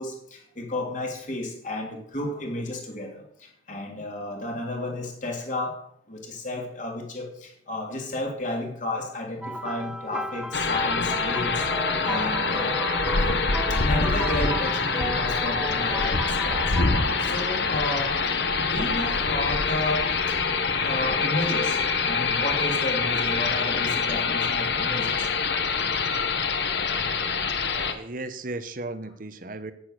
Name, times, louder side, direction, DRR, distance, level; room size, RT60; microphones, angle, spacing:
voice 1, 0.0-5.8 6.1-11.7 12.0-12.8 13.2-13.3 13.7-16.8 17.2-18.2 18.5-20.1 20.8-25.3, left 1 dB, 45° left, 0 dB, 3.1 m, -32 dB
sound 1, 9.4-17.7 18.6-18.8 20.6-20.7, right 1 dB, 5° right, 0.4 m, -35 dB
sound 2, 10.5-27.9, left 4 dB, 70° left, 1.2 m, -25 dB
voice 2, 27.7-29.7, right 2 dB, 50° right, 10 dB, 0.9 m, -35 dB
10.5 x 9.6 x 6.6 m, 0.71 s
head